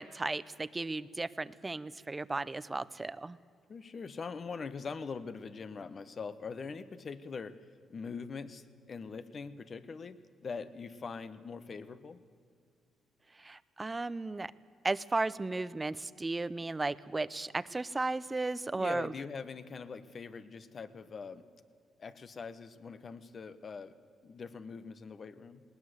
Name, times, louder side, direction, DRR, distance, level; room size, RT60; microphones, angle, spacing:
voice 1, 0.0-3.4 13.4-14.5 14.8-19.1, right 3 dB, 20° right, 17 dB, 0.7 m, -35 dB
voice 2, 3.7-7.6 7.9-12.2 18.8-21.4 22.0-23.9 24.2-25.6, left 5 dB, 45° left, 13 dB, 1.2 m, -42 dB
19.5 x 19.0 x 8.1 m, 2.3 s
cardioid pair, 90°, 0 cm